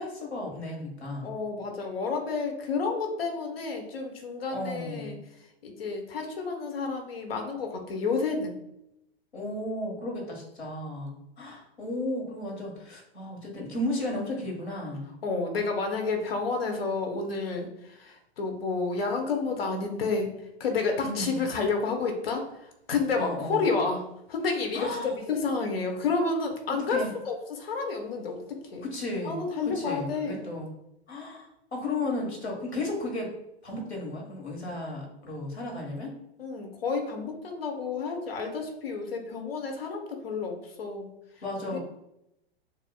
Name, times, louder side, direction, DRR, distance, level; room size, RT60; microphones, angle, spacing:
voice 1, 0.0-1.3 4.5-5.2 9.3-15.1 21.0-21.5 23.1-23.7 24.7-25.1 26.9-27.1 28.8-29.4 29.6-30.7 31.1-33.3 33.6-36.1 41.4-41.8, left 1 dB, 85° left, -1 dB, 1.7 m, -34 dB
voice 2, 1.2-5.2 5.6-8.5 15.2-20.3 20.6-28.4 28.7-28.9 29.2-30.4 36.4-41.1 41.6-41.8, left 4 dB, 65° left, 3 dB, 1.1 m, -30 dB
6.8 x 2.9 x 2.3 m, 0.82 s
figure-of-eight pair, 100°, 32 cm